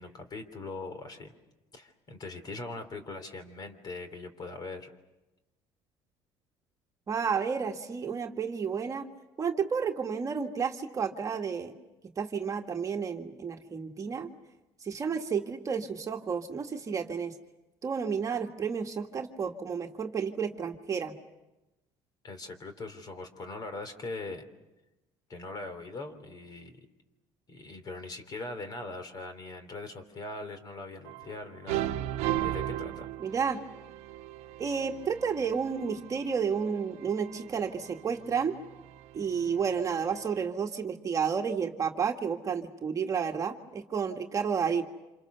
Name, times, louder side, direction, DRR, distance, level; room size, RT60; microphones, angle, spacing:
voice 1, 0.0-1.3 1.7-4.9 22.2-24.4 25.3-26.9 27.5-31.9 32.4-33.1, left 2 dB, 40° left, 9 dB, 3.3 m, -41 dB
voice 2, 7.1-9.1 9.4-11.7 12.2-14.3 14.8-17.3 17.8-21.1 33.2-33.6 34.6-38.5 39.1-44.8, right 6 dB, 30° right, 3 dB, 1.7 m, -31 dB
sound 1, 31.1-31.4 31.7-40.5, right 13 dB, 85° right, 1.0 m, -38 dB
28.0 x 27.5 x 6.8 m, 1.0 s
cardioid pair, 120°, 11 cm